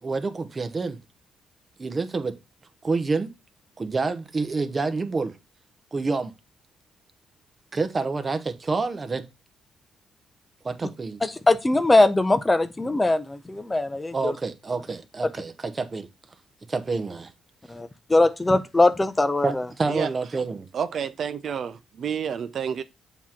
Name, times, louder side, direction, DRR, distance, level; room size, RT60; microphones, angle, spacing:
voice 1, 0.0-1.0 1.8-2.4 2.8-3.3 3.8-5.4 5.9-6.3 7.7-9.2 10.6-11.2 14.1-16.1 16.7-17.3 19.4-20.7, right 4 dB, 30° right, 0.9 m, -28 dB
voice 2, 11.2-14.3 17.7-19.7, left 2 dB, 15° left, 0.6 m, -21 dB
voice 3, 20.7-22.8, right 7 dB, 55° right, 0.4 m, -29 dB
7.2 x 3.0 x 5.6 m
cardioid pair, 90°, 0 cm